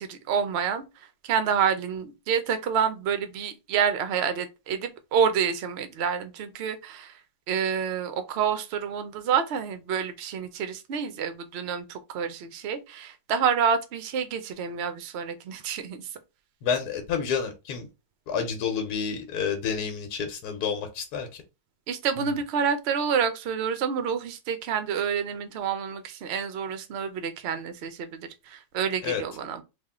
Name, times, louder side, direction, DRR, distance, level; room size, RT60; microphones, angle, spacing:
voice 1, 0.0-7.2 7.5-16.2 21.9-29.6, right 7 dB, 60° right, 0.7 m, -28 dB
voice 2, 16.6-17.8 18.3-21.4 29.0-29.2, left 6 dB, 85° left, 1.3 m, -29 dB
3.4 x 2.4 x 3.5 m
omnidirectional pair, 1.6 m